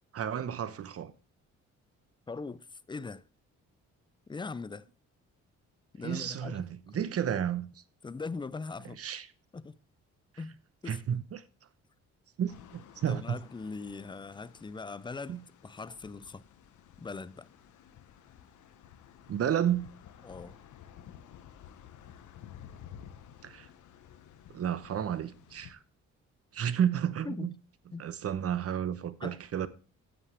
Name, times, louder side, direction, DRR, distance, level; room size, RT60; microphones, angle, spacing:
voice 1, 0.1-1.1 6.0-6.7 6.9-7.7 9.0-9.3 10.9-11.4 12.4-13.4 15.3-15.4 19.3-19.8 23.4-23.7 24.5-25.8 26.5-27.5 28.0-29.7, right 9 dB, 50° right, 1.0 m, -31 dB
voice 2, 2.3-3.2 4.3-4.9 5.9-6.6 8.0-9.0 9.5-9.8 10.4-10.6 10.8-11.2 13.1-16.4 17.0-17.5 20.2-20.6 27.2-27.5 27.9-28.1 29.2-29.7, left 4 dB, 15° left, 0.5 m, -41 dB
sound 1, 12.5-25.7, left 9 dB, 75° left, 1.1 m, -53 dB
9.7 x 8.6 x 3.4 m
cardioid pair, 90°, 30 cm